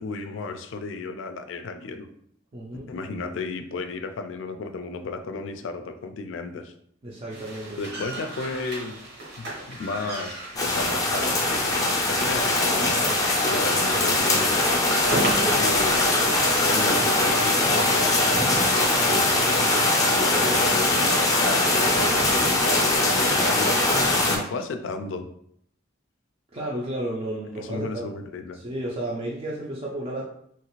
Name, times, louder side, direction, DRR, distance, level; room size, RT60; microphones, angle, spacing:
voice 1, 0.0-2.1 2.9-6.7 7.8-8.9 9.4-13.2 13.5-14.7 15.5-16.2 16.6-18.5 19.1-24.0 24.3-25.3 27.6-28.6, left 3 dB, 75° left, 7 dB, 0.4 m, -34 dB
voice 2, 2.5-2.9 7.0-8.1 15.3-15.6 26.5-28.1 28.5-30.2, right 1 dB, 30° right, -4 dB, 0.4 m, -32 dB
sound 1, 7.3-17.5, right 1 dB, 60° right, 0.9 m, -35 dB
sound 2, 10.6-24.4, left 2 dB, 20° left, 0.5 m, -21 dB
3.0 x 2.4 x 3.0 m, 0.70 s
head